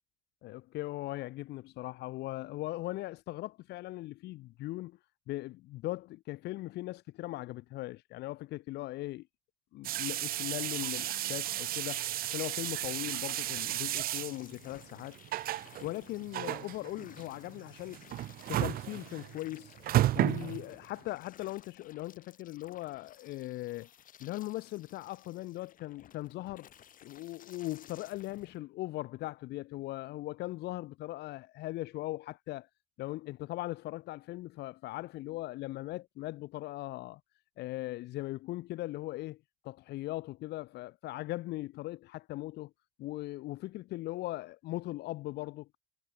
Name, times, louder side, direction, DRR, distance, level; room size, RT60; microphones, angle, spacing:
voice 1, 0.4-5.0 5.3-9.3 9.7-15.2 15.8-18.0 18.5-19.7 20.1-23.9 24.2-26.7 27.0-32.7 33.0-37.2 37.6-42.7 43.0-45.7, left 17 dB, 80° left, 1.1 m, -39 dB
sound 1, 9.8-21.0, right 14 dB, 60° right, 0.6 m, -34 dB
sound 2, 10.7-28.6, left 10 dB, 55° left, 3.5 m, -57 dB
cardioid pair, 110°, 17 cm